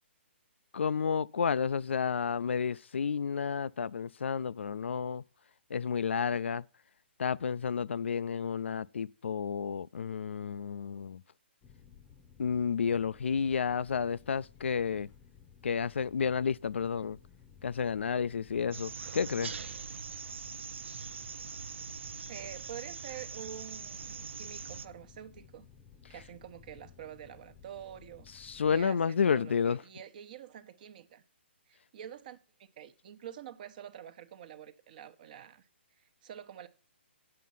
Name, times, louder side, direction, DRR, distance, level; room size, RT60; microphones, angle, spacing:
voice 1, 0.7-5.2 5.7-6.6 7.2-11.2 12.4-15.1 15.6-17.2 17.6-19.6 28.4-29.8, left 6 dB, 75° left, 0.4 m, -31 dB
sound 1, 11.6-28.9, left 7 dB, 20° left, 0.8 m, -57 dB
sound 2, 18.7-24.9, right 5 dB, 75° right, 0.6 m, -42 dB
voice 2, 22.3-25.7 26.1-31.2 31.7-35.7 36.0-36.7, right 10 dB, 45° right, 1.0 m, -47 dB
9.2 x 7.6 x 5.6 m
hypercardioid pair, 145°, 6 cm